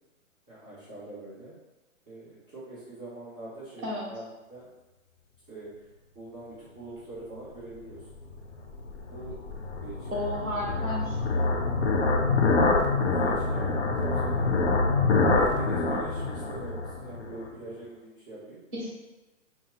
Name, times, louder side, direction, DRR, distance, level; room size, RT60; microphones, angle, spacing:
voice 1, 0.5-1.6 2.0-4.7 5.5-5.8 6.1-8.1 9.1-9.4 9.8-10.2 12.6-14.6 15.3-18.6, right 2 dB, 5° left, -21 dB, 1.2 m, -43 dB
sound 1, 7.9-17.5, left 3 dB, 55° left, 0.7 m, -26 dB
voice 2, 10.1-11.2 18.7-18.9, left 1 dB, 10° right, -11 dB, 0.7 m, -32 dB
5.7 x 2.3 x 3.8 m, 1.1 s
hypercardioid pair, 170°, 40 cm